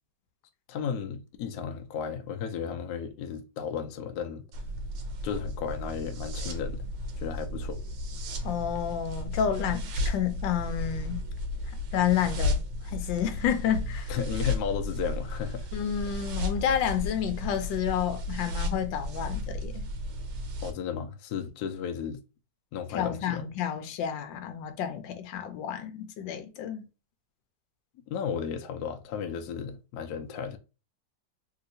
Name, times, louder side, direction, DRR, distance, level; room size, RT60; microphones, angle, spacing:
voice 1, 0.7-4.5 5.2-6.8 7.2-7.8 14.1-15.7 20.6-22.2 22.7-23.4 28.1-30.6, left 7 dB, 70° left, 1.0 m, -34 dB
sound 1, 4.5-20.7, left 1 dB, 85° right, 1.5 m, -34 dB
voice 2, 8.4-11.2 11.9-12.6 12.8-14.1 15.7-19.9 22.9-26.8, left 9 dB, 90° left, 1.3 m, -30 dB
3.5 x 2.8 x 2.6 m
omnidirectional pair, 2.0 m